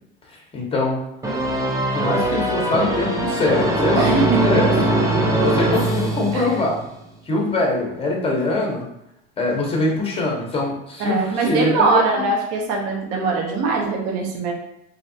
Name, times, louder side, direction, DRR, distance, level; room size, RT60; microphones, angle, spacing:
voice 1, 0.5-1.0 1.9-4.7 5.4-6.8 7.3-8.8 9.4-12.3, left 2 dB, 20° left, -1 dB, 0.9 m, -23 dB
sound 1, 1.2-6.9, right 1 dB, 10° right, 0.5 m, -21 dB
voice 2, 3.9-4.9 6.3-6.5 11.1-14.5, right 4 dB, 55° right, 0 dB, 0.8 m, -22 dB
3.2 x 2.7 x 2.6 m, 0.81 s
supercardioid pair, 125°, 30 cm